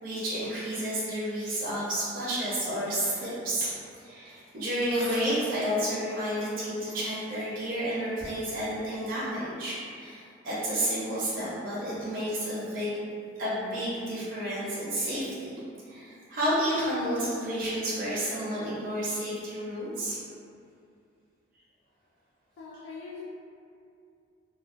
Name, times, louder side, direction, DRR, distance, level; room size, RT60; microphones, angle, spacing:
voice 1, 0.0-13.0 13.4-15.6 15.9-20.2, equal, 45° right, -9 dB, 0.6 m, -31 dB
Bicycle, 4.2-6.6 6.9-9.3 10.0-10.1, equal, 5° left, 0.5 m, -48 dB
voice 2, 22.6-23.2, left 4 dB, 85° left, -6 dB, 0.3 m, -42 dB
2.4 x 2.2 x 2.4 m, 2.5 s
head